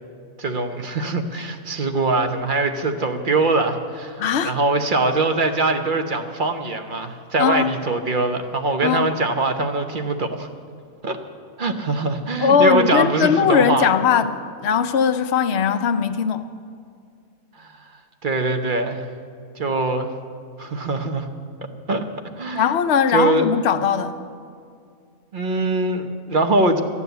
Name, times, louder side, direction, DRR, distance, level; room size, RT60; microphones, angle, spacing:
voice 1, 0.4-10.5 11.0-11.2 11.6-13.9 17.6-17.7 18.2-19.1 19.6-20.1 20.6-21.3 21.9-22.0 22.4-22.6 23.1-23.5 25.3-26.8, right 2 dB, 40° right, 6 dB, 1.0 m, -22 dB
voice 2, 4.2-4.6 7.4-7.7 8.8-9.1 12.4-16.6 22.5-24.2, left 7 dB, 55° left, 10 dB, 0.9 m, -19 dB
13.5 x 9.8 x 8.1 m, 2.3 s
omnidirectional pair, 1.5 m